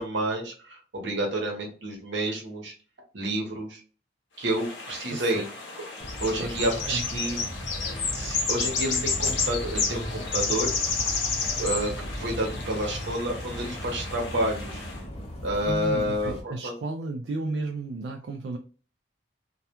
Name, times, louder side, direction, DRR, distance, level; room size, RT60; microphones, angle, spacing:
voice 1, 0.0-2.7 3.1-3.8 4.4-5.4 6.2-7.4 7.8-10.7 11.6-14.8 15.4-16.7, right 1 dB, 80° right, 0 dB, 0.9 m, -29 dB
sound 1, 4.4-15.0, left 5 dB, 80° left, 0.7 m, -31 dB
voice 2, 5.1-5.4 6.4-7.0 15.6-18.6, right 3 dB, 65° right, 1 dB, 0.3 m, -33 dB
sound 2, 6.0-16.4, equal, 35° left, 0.6 m, -37 dB
2.3 x 2.2 x 2.8 m, 0.37 s
head